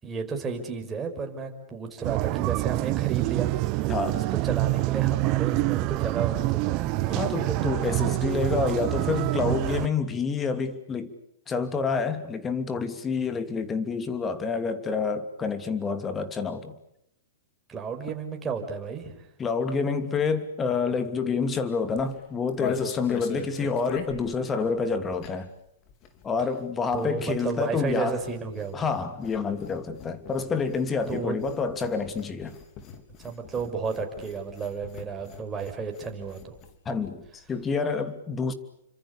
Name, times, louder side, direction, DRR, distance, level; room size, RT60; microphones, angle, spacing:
voice 1, 0.0-7.7 17.7-19.3 26.9-28.8 31.1-31.3 33.2-36.6, right 5 dB, 20° right, 5.5 m, -33 dB
sound 1, 2.0-9.9, right 20 dB, 40° right, 1.0 m, -26 dB
voice 2, 3.9-4.2 7.1-11.1 11.5-16.8 19.4-25.5 26.2-28.2 28.7-32.6 36.8-38.5, left 5 dB, 20° left, 2.8 m, -28 dB
sound 2, 21.9-25.6 25.8-36.8 37.0-37.1 37.3-37.7, left 7 dB, 35° left, 4.0 m, -41 dB
30.0 x 26.0 x 6.9 m
hypercardioid pair, 120°, 0 cm